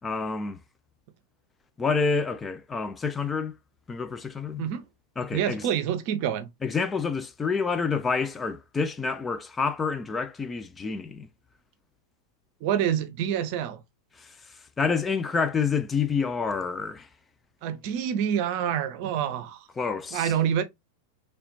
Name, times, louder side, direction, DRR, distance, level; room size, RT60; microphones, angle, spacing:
voice 1, 0.0-0.6 1.8-3.5 3.9-4.6 5.2-5.7 6.6-11.3 14.2-17.1 19.8-20.3, left 5 dB, 15° left, 0.4 m, -28 dB
voice 2, 5.3-6.5 12.6-13.8 17.6-19.7 20.1-20.6, right 9 dB, 45° right, 0.7 m, -27 dB
4.2 x 3.4 x 2.6 m
figure-of-eight pair, 90°, 0 cm